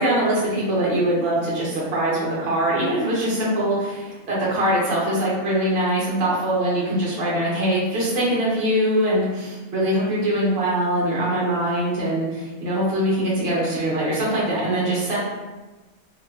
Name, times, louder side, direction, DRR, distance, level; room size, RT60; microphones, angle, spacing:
voice 1, 0.0-15.2, right 1 dB, 45° right, -6 dB, 1.1 m, -22 dB
3.8 x 2.6 x 2.4 m, 1.2 s
omnidirectional pair, 1.5 m